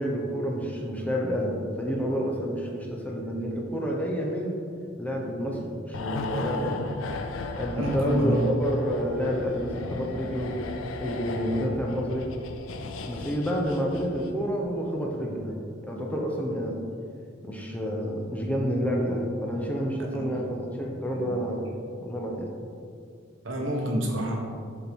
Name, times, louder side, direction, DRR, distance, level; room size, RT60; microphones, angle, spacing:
voice 1, 0.0-4.6 5.0-6.8 7.5-10.6 11.0-12.3 13.0-15.5 15.8-16.8 17.4-21.6 22.0-22.5, equal, 10° left, -1 dB, 0.6 m, -29 dB
sound 1, 5.9-14.5 14.7-14.9, left 3 dB, 85° left, 0.5 m, -36 dB
voice 2, 7.8-8.4 20.0-20.3 21.2-21.4 23.4-24.4, right 1 dB, 75° right, 0 dB, 1.0 m, -28 dB
6.5 x 4.3 x 3.5 m, 2.3 s
head